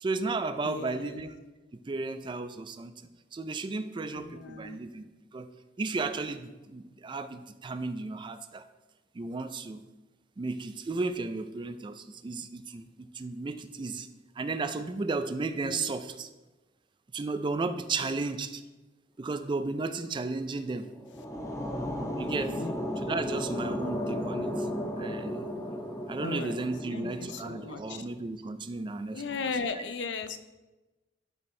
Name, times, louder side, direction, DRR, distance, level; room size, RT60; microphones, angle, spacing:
voice 1, 0.0-1.4 1.7-5.5 5.8-8.6 9.1-9.8 10.4-14.1 14.4-16.3 17.1-18.6 19.2-20.9 22.2-22.6 23.0-24.7 25.0-25.5 26.1-29.5 29.7-29.8, right 3 dB, 25° right, 10 dB, 0.4 m, -34 dB
voice 2, 0.6-1.2 4.1-4.8 15.6-15.9 18.0-18.2 22.6-22.7 26.2-26.6 26.9-28.0 29.1-30.4, left 4 dB, 70° left, 10 dB, 0.6 m, -36 dB
Dark Wind, 20.8-27.9, equal, 15° left, 0.8 m, -35 dB
12.0 x 4.4 x 3.2 m, 1.1 s
head